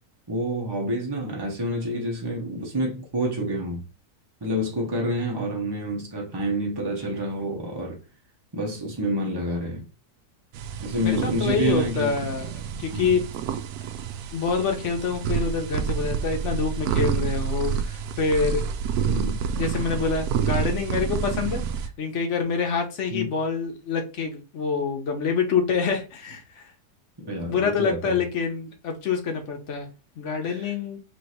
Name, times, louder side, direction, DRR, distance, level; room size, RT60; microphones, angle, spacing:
voice 1, 0.3-3.9 4.4-8.0 8.5-9.8 10.8-12.1 12.9-13.2 19.1-19.4 23.1-23.3 27.3-28.2 30.4-30.7, equal, 25° right, 0.5 m, -28 dB
sound 1, 10.5-21.9, right 7 dB, 70° right, 1.0 m, -28 dB
voice 2, 11.0-13.2 14.3-18.6 19.5-21.6 22.0-26.6 27.4-29.9 30.2-31.0, left 5 dB, 50° left, 1.1 m, -26 dB
3.4 x 3.1 x 4.1 m
omnidirectional pair, 1.8 m